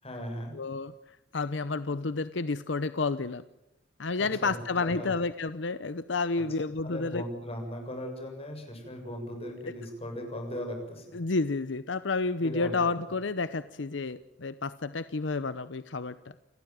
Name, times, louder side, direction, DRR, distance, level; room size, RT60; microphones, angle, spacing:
voice 1, 0.0-0.5 4.2-5.1 6.8-11.2 12.4-12.9, left 1 dB, 35° left, 4 dB, 7.3 m, -38 dB
voice 2, 0.5-3.4 4.0-7.2 11.1-16.2, left 3 dB, 75° left, 14 dB, 0.8 m, -30 dB
30.0 x 15.0 x 9.2 m, 0.91 s
head